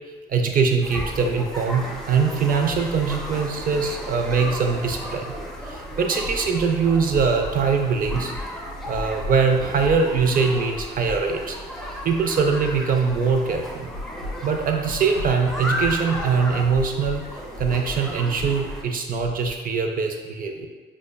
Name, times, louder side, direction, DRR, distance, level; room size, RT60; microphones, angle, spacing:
voice 1, 0.3-5.3 5.7-8.3 8.9-11.6 12.0-13.9 14.4-17.2 17.6-20.7, right 5 dB, 45° right, 4 dB, 0.5 m, -22 dB
sound 1, 0.8-18.8, equal, ahead, 0.5 m, -34 dB
sound 2, 6.2-6.7 7.1-7.6 8.0-8.5 8.9-9.4 9.8-10.3 10.7-11.5 11.8-11.9 13.9-14.5 14.9-15.3 15.8-16.3 16.7-17.2 17.6-18.0 18.4-18.8 19.2-19.5, left 1 dB, 75° left, 0.6 m, -35 dB
5.1 x 2.2 x 2.3 m, 1.4 s
cardioid pair, 90°, 20 cm